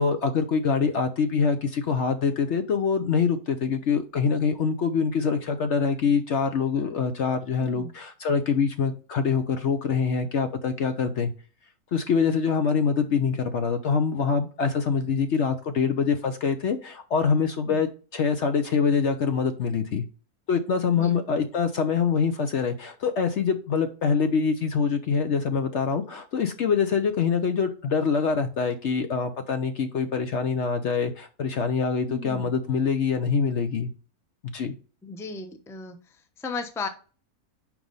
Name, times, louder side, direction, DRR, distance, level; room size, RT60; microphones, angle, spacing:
voice 1, 0.0-11.3 11.9-20.0 20.5-33.9 34.5-34.7, left 5 dB, 60° left, 8 dB, 0.9 m, -25 dB
voice 2, 7.6-7.9 17.7-17.8 21.0-21.3 32.1-32.5 35.0-36.0 36.4-36.9, left 4 dB, 5° left, 6 dB, 0.6 m, -35 dB
6.0 x 5.2 x 5.4 m, 0.37 s
omnidirectional pair, 1.6 m